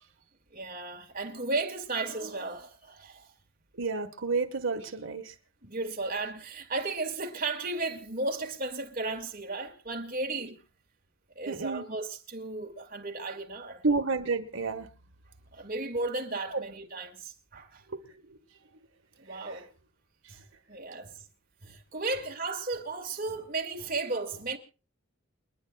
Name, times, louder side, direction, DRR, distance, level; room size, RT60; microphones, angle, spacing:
voice 1, 0.5-3.3 5.6-10.6 11.4-13.8 15.5-17.8 19.2-19.7 20.3-20.4 20.7-21.2 21.6-24.6, right 3 dB, 40° right, 2.3 m, -34 dB
voice 2, 3.7-5.3 11.4-11.8 13.8-14.9 16.5-16.6 17.9-18.4 19.3-19.6, right 4 dB, 65° right, 1.7 m, -31 dB
29.0 x 10.5 x 2.4 m
head